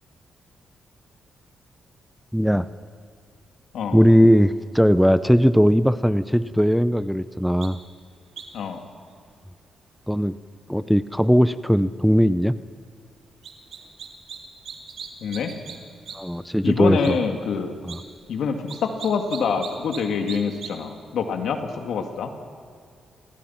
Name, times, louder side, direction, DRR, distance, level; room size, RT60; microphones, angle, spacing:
voice 1, 2.3-2.7 3.9-7.8 10.1-10.4 10.7-12.6 16.1-17.2 17.8-18.0, equal, ahead, 14 dB, 0.6 m, -19 dB
sound 1, 7.6-7.7 8.4-8.6 13.4-14.4 14.6-15.8 16.1-16.2 16.5-16.6 17.0-17.1 17.8-18.0 18.7-20.0 20.3-20.7, right 8 dB, 75° right, 3.0 m, -38 dB
voice 2, 15.2-15.5 16.6-17.7 18.3-22.3, left 5 dB, 80° left, 5 dB, 2.5 m, -26 dB
29.0 x 21.5 x 5.9 m, 2.3 s
cardioid pair, 90°, 0 cm